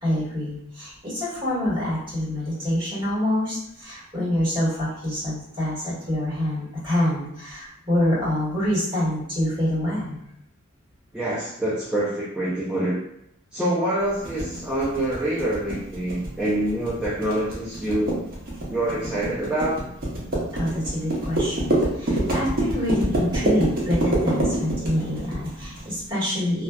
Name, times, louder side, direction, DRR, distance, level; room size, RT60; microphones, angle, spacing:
voice 1, 0.0-10.2 20.5-26.6, left 1 dB, 25° right, -9 dB, 1.5 m, -26 dB
voice 2, 11.1-13.0 13.5-18.1 18.7-19.8, right 1 dB, 5° right, -7 dB, 0.3 m, -26 dB
sound 1, 14.2-25.8, right 1 dB, 45° right, 0.6 m, -26 dB
2.6 x 2.2 x 2.2 m, 0.75 s
head